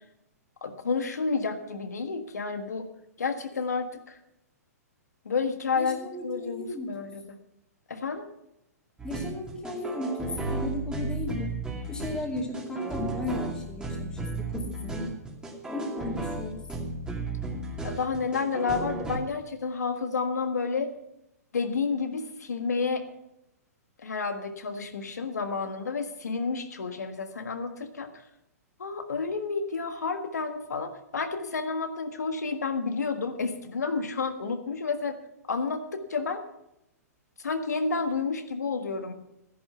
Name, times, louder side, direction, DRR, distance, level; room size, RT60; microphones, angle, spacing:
voice 1, 0.6-2.9 3.2-4.2 5.3-7.4 7.9-8.2 17.8-20.9 21.5-23.0 24.0-28.1 28.8-35.2 35.5-36.4 37.4-39.1, left 4 dB, 80° left, 7 dB, 1.6 m, -30 dB
voice 2, 5.8-6.9 9.0-11.5 11.9-15.1 15.7-16.6, left 1 dB, 10° left, -2 dB, 2.6 m, -35 dB
sound 1, 9.0-19.2, right 2 dB, 10° right, 2.5 m, -34 dB
13.5 x 10.5 x 5.8 m, 0.85 s
hypercardioid pair, 120°, 9 cm